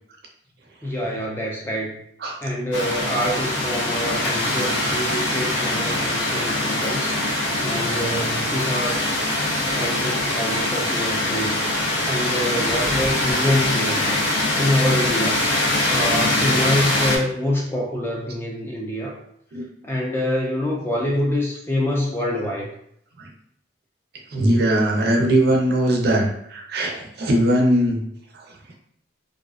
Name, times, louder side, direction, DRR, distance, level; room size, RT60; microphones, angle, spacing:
voice 1, 0.8-2.0 2.4-9.2 9.6-11.6 12.0-14.2 14.5-15.4 15.9-19.2 19.8-22.7, left 1 dB, 10° left, -2 dB, 0.3 m, -26 dB
sound 1, 2.7-17.2, left 1 dB, 75° left, 0.5 m, -23 dB
voice 2, 24.3-28.0, right 1 dB, 55° right, 1 dB, 0.4 m, -20 dB
2.4 x 2.3 x 2.3 m, 0.71 s
head